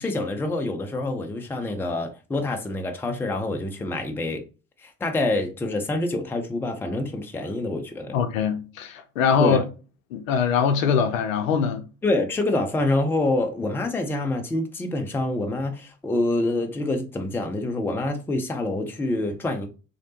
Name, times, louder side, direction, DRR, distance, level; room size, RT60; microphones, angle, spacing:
voice 1, 0.0-4.4 4.8-8.2 9.4-9.6 12.0-19.7, left 2 dB, 5° left, 0.5 m, -26 dB
voice 2, 8.1-9.6 10.1-11.8, left 6 dB, 70° left, 0.6 m, -22 dB
3.2 x 2.8 x 2.7 m
figure-of-eight pair, 60°, 41 cm